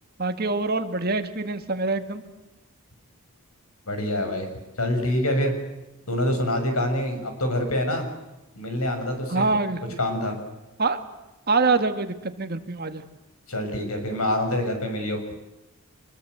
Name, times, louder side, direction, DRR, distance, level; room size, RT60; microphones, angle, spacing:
voice 1, 0.2-2.2 9.3-9.8 10.8-11.0 11.5-13.0, right 3 dB, 45° right, 8 dB, 1.8 m, -25 dB
voice 2, 3.9-4.5 4.8-5.6 6.1-8.1 8.5-9.5 10.0-10.4 13.5-15.2, left 1 dB, 80° left, 6 dB, 6.6 m, -26 dB
25.5 x 21.5 x 8.0 m, 1.0 s
head